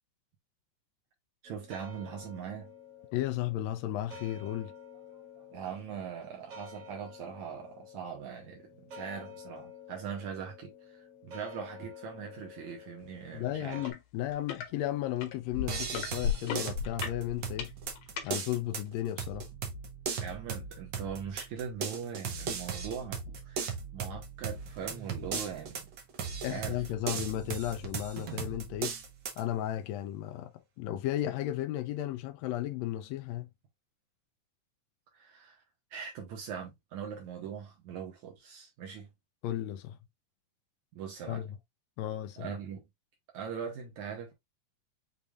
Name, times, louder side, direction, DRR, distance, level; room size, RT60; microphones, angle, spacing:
sound 1, 1.4-13.9, left 5 dB, 50° right, 2.4 m, -50 dB
voice 1, 1.4-2.7 5.5-13.8 20.2-25.9 26.5-26.8 27.1-27.2 35.1-35.6 35.9-39.1 40.9-41.4 42.4-42.8 43.3-44.3, right 7 dB, 70° right, 2.3 m, -41 dB
voice 2, 3.1-4.7 13.3-17.7 18.2-19.5 26.4-29.0 29.4-33.5 39.4-40.0 41.3-41.6 42.0-42.5, left 13 dB, 85° left, 1.5 m, -34 dB
sound 2, 13.8-14.0 14.3-14.7 15.2-18.3 19.0-19.1, left 7 dB, 65° left, 1.9 m, -34 dB
sound 3, 15.7-29.4, right 5 dB, 90° right, 1.0 m, -38 dB
6.9 x 3.3 x 2.3 m
omnidirectional pair, 3.6 m